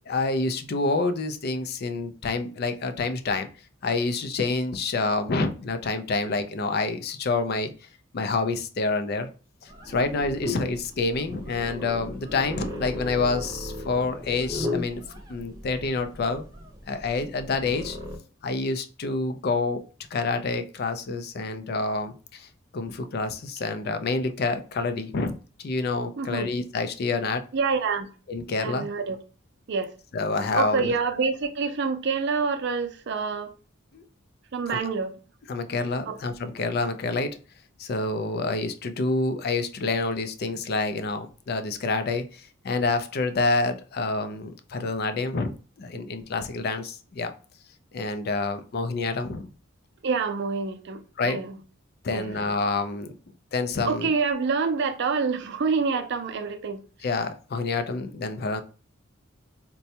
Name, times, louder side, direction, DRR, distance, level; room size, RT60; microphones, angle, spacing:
voice 1, 0.1-3.5 3.8-7.7 8.1-9.3 9.6-15.0 15.3-16.4 16.9-18.0 18.4-19.8 20.1-27.4 28.3-28.9 30.1-31.0 33.9-34.0 34.7-34.8 35.5-37.4 37.8-47.3 47.9-49.5 51.2-51.4 52.0-53.1 53.5-54.1 57.0-58.6, left 3 dB, 50° left, 0.4 m, -28 dB
sound 1, 9.7-18.2, left 2 dB, 20° right, 0.6 m, -36 dB
voice 2, 26.2-26.5 27.5-28.1 28.6-29.2 29.7-29.9 30.5-33.5 34.5-35.1 36.1-36.2 50.0-51.0 51.3-51.6 52.1-52.3 53.8-56.8, right 5 dB, 60° right, 0.5 m, -27 dB
4.1 x 2.2 x 2.7 m
head